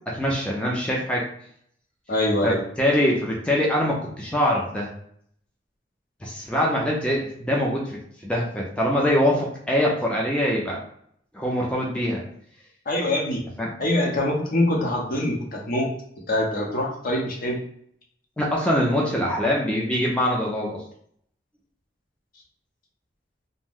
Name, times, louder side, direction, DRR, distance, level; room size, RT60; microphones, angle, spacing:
voice 1, 0.1-1.3 2.4-4.9 6.2-10.8 11.3-12.2 13.6-13.7 18.4-20.8, equal, 5° left, -3 dB, 0.4 m, -23 dB
voice 2, 2.1-2.6 12.9-13.4 13.8-15.9 16.3-17.6, left 1 dB, 50° left, 0 dB, 0.7 m, -24 dB
2.5 x 2.1 x 3.5 m, 0.66 s
head